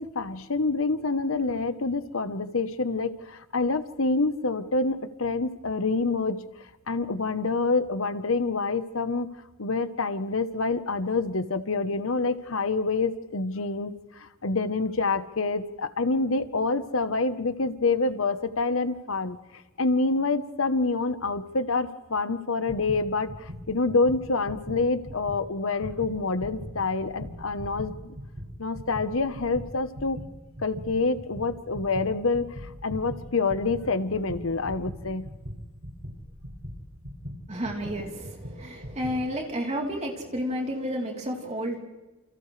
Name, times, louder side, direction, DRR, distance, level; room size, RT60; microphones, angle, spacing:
voice 1, 0.0-6.4 6.9-9.3 9.6-19.4 19.8-28.1 28.6-30.2 30.6-35.3, left 3 dB, 70° left, 11 dB, 1.0 m, -27 dB
sound 1, 22.7-25.4 25.7-39.3, equal, 75° right, 7.0 m, -40 dB
voice 2, 37.5-41.8, equal, 30° right, 0 dB, 3.6 m, -31 dB
29.0 x 29.0 x 3.3 m, 1.1 s
head